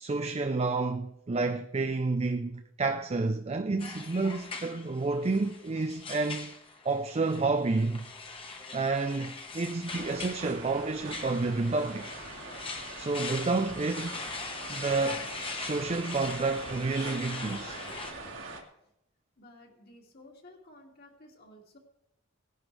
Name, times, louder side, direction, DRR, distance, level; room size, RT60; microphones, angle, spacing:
voice 1, 0.0-6.5 6.8-8.1 8.7-12.1 13.0-14.2 14.7-17.8, right 3 dB, 30° right, 0.4 m, -30 dB
sound 1, 3.8-18.1, left 3 dB, 25° left, 1.3 m, -41 dB
sound 2, 9.8-18.6, right 3 dB, 65° right, 2.1 m, -43 dB
voice 2, 19.4-21.8, left 1 dB, 50° left, 2.3 m, -54 dB
18.5 x 11.0 x 3.3 m
head